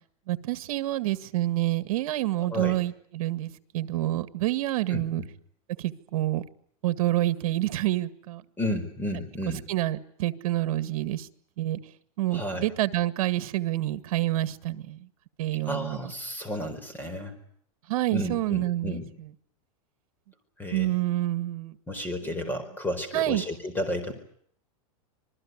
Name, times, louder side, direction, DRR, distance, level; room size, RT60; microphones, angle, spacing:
voice 1, 0.3-5.2 5.8-6.4 6.8-8.4 9.7-11.3 11.6-11.8 12.2-15.0 15.4-16.0 17.9-19.0 20.7-21.7 22.3-22.5 23.1-23.4, right 15 dB, 65° right, 13 dB, 1.8 m, -28 dB
voice 2, 2.4-2.8 4.9-5.3 8.6-9.6 12.3-12.7 15.7-17.4 18.1-19.1 20.6-21.0 21.9-24.1, left 1 dB, 10° left, 8 dB, 4.7 m, -32 dB
26.5 x 21.0 x 9.6 m, 0.64 s
supercardioid pair, 155°, 19 cm